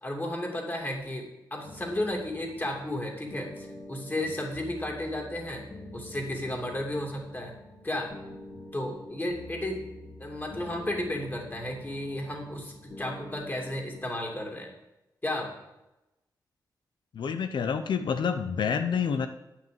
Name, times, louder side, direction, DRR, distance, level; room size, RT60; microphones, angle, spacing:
voice 1, 0.0-5.6 5.9-7.5 7.8-8.1 8.7-9.8 10.2-14.7 15.2-15.5, left 1 dB, 25° left, 1 dB, 2.7 m, -33 dB
sound 1, 1.6-14.1, left 1 dB, 60° left, 2.5 m, -46 dB
voice 2, 17.1-19.3, left 6 dB, 90° left, 8 dB, 0.8 m, -28 dB
9.5 x 6.2 x 7.7 m, 0.94 s
wide cardioid pair, 95°, 8 cm